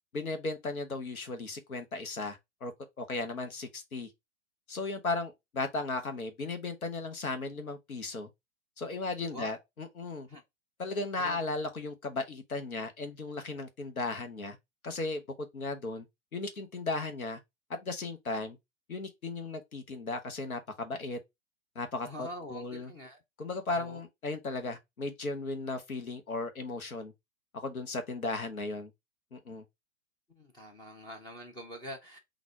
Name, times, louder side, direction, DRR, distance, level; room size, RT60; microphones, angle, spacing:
voice 1, 0.1-2.7 3.0-4.1 4.7-8.3 8.8-10.3 10.8-14.6 14.8-16.1 16.3-17.4 17.7-18.6 18.9-21.2 21.7-22.9 23.4-27.1 27.6-28.9 29.3-29.6, left 3 dB, 85° left, 1.2 m, -36 dB
voice 2, 22.0-23.2 23.7-24.0 30.4-32.2, equal, 10° left, 0.4 m, -44 dB
4.0 x 2.5 x 4.3 m
figure-of-eight pair, 115°, 41 cm